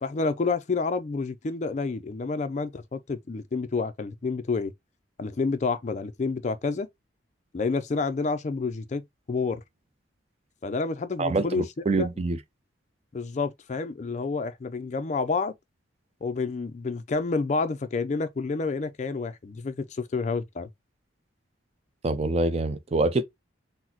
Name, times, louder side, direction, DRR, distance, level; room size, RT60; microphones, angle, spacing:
voice 1, 0.0-4.7 5.2-6.9 7.5-9.6 10.6-11.6 12.0-12.1 13.1-15.5 16.2-20.7, left 4 dB, 40° left, 0.4 m, -29 dB
voice 2, 11.2-12.4 22.0-23.2, right 2 dB, 30° right, 0.4 m, -25 dB
4.0 x 2.1 x 2.7 m
head